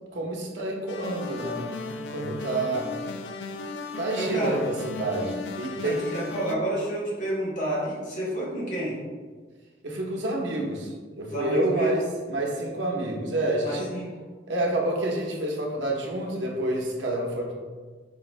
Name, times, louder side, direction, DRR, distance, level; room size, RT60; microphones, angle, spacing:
voice 1, 0.1-1.6 2.1-2.9 4.0-6.0 9.8-12.0 12.3-13.9 14.5-17.5, right 1 dB, 80° right, -1 dB, 0.8 m, -28 dB
sound 1, 0.9-6.6, left 3 dB, 70° left, 0.3 m, -36 dB
voice 2, 4.2-4.6 5.8-9.0 11.3-12.0 13.6-14.1, right 1 dB, 45° left, -6 dB, 1.2 m, -29 dB
4.7 x 2.5 x 3.1 m, 1.5 s
head